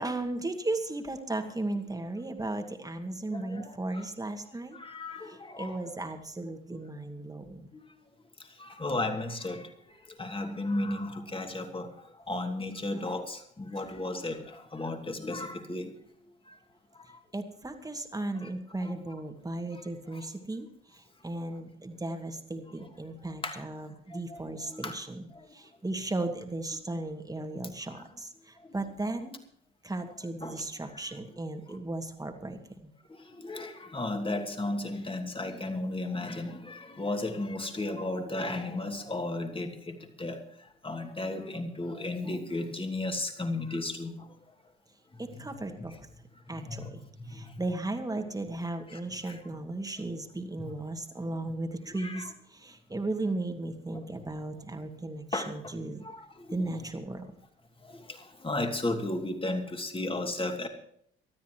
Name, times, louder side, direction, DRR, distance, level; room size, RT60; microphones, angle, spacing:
voice 1, 0.0-4.8 5.3-7.7 13.8-13.9 17.3-29.4 29.8-32.9 45.2-46.0 46.5-47.0 47.3-56.0 56.5-57.4, right 2 dB, 10° right, 5 dB, 2.2 m, -36 dB
voice 2, 3.3-4.1 4.7-5.9 7.7-7.8 8.5-15.9 16.5-16.6 16.9-17.2 18.4-18.5 18.8-18.9 19.7-19.8 20.1-20.3 23.4-23.6 24.1-24.4 24.7-25.0 25.3-25.5 28.0-28.1 28.6-28.8 30.4-30.6 33.1-40.4 40.8-44.3 45.8-45.9 46.5-46.9 47.2-47.6 48.9-49.0 49.3-49.4 51.9-52.3 55.3-55.7 56.0-56.6 57.8-60.7, left 2 dB, 20° left, 5 dB, 2.7 m, -35 dB
24.0 x 13.0 x 3.1 m, 0.66 s
figure-of-eight pair, 50°, 29 cm